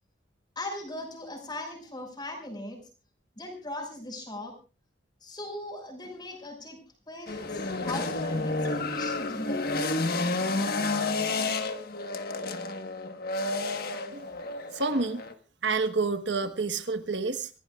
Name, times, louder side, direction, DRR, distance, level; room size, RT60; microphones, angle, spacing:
voice 1, 0.6-2.8 3.4-4.5 5.2-6.8 7.1-9.6, left 1 dB, 25° left, 3 dB, 5.7 m, -39 dB
sound 1, 7.3-15.3, left 3 dB, 55° left, 1.5 m, -30 dB
voice 2, 14.7-15.2 15.6-17.5, right 4 dB, 70° right, 8 dB, 1.3 m, -28 dB
26.5 x 16.5 x 2.4 m, 0.35 s
head